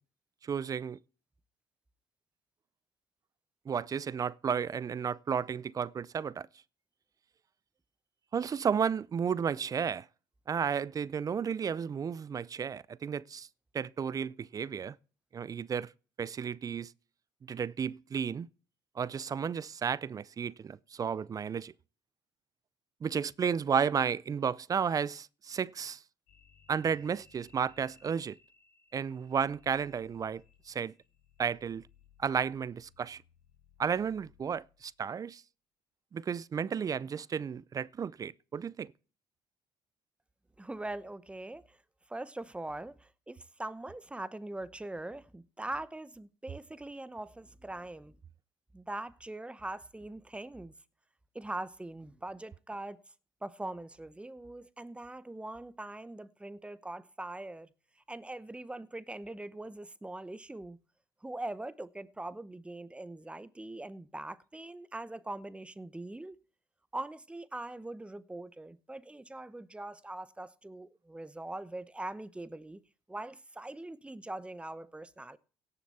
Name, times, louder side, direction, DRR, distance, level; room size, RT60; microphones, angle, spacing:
voice 1, 0.4-1.0 3.7-6.5 8.3-10.1 10.5-13.5 13.7-15.0 15.3-15.9 16.2-16.9 17.4-18.5 19.0-21.7 23.0-26.0 26.7-28.4 28.9-30.9 31.4-31.9 32.2-33.2 33.8-35.4 36.1-38.9, right 7 dB, 35° right, 0.5 m, -33 dB
sound 1, 26.3-34.9, left 7 dB, 85° left, 3.8 m, -63 dB
voice 2, 40.6-41.8 42.1-48.2 48.7-50.7 51.3-53.0 53.4-60.8 61.2-66.4 66.9-72.8 73.1-75.4, right 2 dB, 10° right, 0.9 m, -42 dB
17.0 x 7.0 x 4.2 m
supercardioid pair, 75°, 10 cm